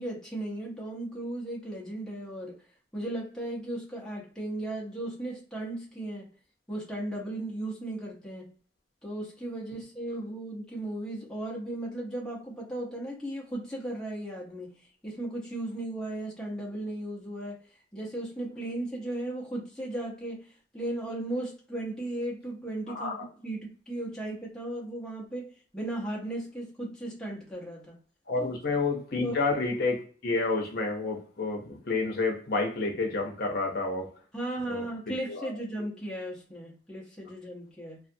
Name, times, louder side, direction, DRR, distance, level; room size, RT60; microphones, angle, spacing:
voice 1, 0.0-2.6 2.9-6.3 6.7-8.5 9.0-17.6 17.9-20.5 20.7-27.9 28.4-28.5 29.2-29.4 34.3-38.0, right 1 dB, 5° left, 0.7 m, -36 dB
voice 2, 28.3-34.1 34.7-34.8 35.3-35.5 35.8-35.9, left 3 dB, 55° left, 0.7 m, -29 dB
2.4 x 2.3 x 2.6 m
head